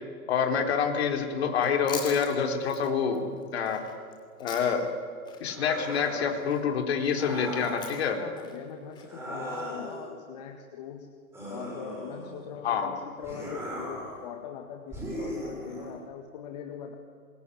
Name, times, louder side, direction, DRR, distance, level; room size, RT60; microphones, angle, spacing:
voice 1, 0.3-3.8 4.4-4.9 5.4-8.2 12.6-12.9, left 6 dB, 45° left, 4 dB, 4.0 m, -27 dB
Chewing mastication, 1.5-5.0 5.3-9.6, left 6 dB, 10° left, 2.8 m, -44 dB
sound 1, 5.5-6.4 7.1-7.9 9.0-10.1 11.3-12.5 13.2-14.2 14.9-15.9, equal, 5° right, 5.8 m, -37 dB
voice 2, 8.2-11.1 11.5-17.0, left 8 dB, 30° left, 3 dB, 1.9 m, -42 dB
26.0 x 22.0 x 9.9 m, 2.1 s
hypercardioid pair, 170°, 43 cm